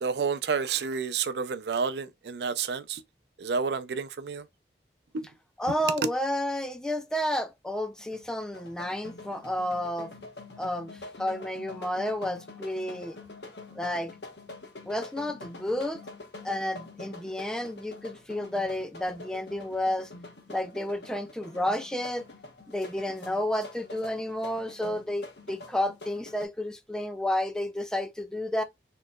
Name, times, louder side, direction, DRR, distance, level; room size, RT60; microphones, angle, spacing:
voice 1, 0.0-3.0 3.4-4.5 5.1-5.3 6.0-6.1, right 5 dB, 75° right, 0.4 m, -30 dB
voice 2, 5.6-10.1 10.6-13.2 13.7-14.1 14.9-16.0 16.4-20.1 20.5-22.2 22.7-28.6, left 1 dB, 5° left, 0.3 m, -31 dB
sound 1, 8.0-26.5, left 2 dB, 80° left, 1.0 m, -46 dB
4.1 x 3.0 x 2.2 m
head